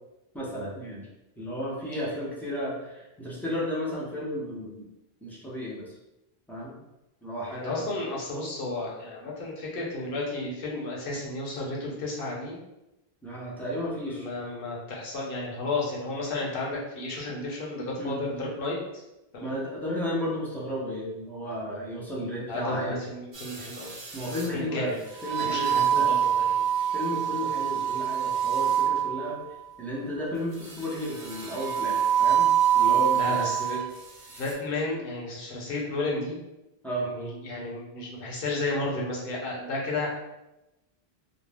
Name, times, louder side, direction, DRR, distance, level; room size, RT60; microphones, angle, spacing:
voice 1, 0.3-1.1 1.4-4.9 5.2-5.9 6.5-6.7 7.2-7.9 13.2-14.3 18.0-18.2 19.4-23.0 24.1-24.9 25.2-26.1 26.9-29.4 29.8-32.5 32.7-33.5 36.8-37.1, equal, ahead, -7 dB, 0.6 m, -33 dB
voice 2, 7.5-12.6 14.0-19.0 19.3-19.6 22.5-23.9 24.5-25.0 25.4-26.5 33.1-33.9 34.3-36.4 37.0-40.1, left 2 dB, 60° left, -3 dB, 0.9 m, -32 dB
sound 1, 23.3-24.5 25.2-29.4 30.6-33.8 34.3-34.5, right 9 dB, 45° right, 0.5 m, -26 dB
2.6 x 2.0 x 3.3 m, 0.94 s
omnidirectional pair, 1.1 m